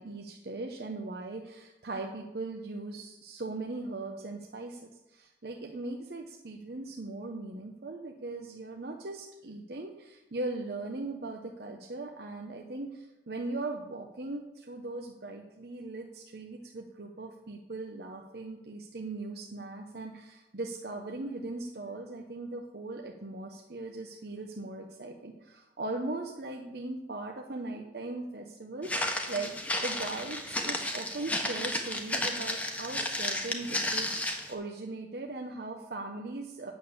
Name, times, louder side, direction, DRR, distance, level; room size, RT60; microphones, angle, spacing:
voice 1, 0.0-4.8 5.1-29.6 29.8-36.7, right 2 dB, 60° right, 2 dB, 0.9 m, -39 dB
Walk footsteps, 28.8-34.5, left 1 dB, 10° left, 1.1 m, -33 dB
9.1 x 6.9 x 8.1 m, 1.0 s
head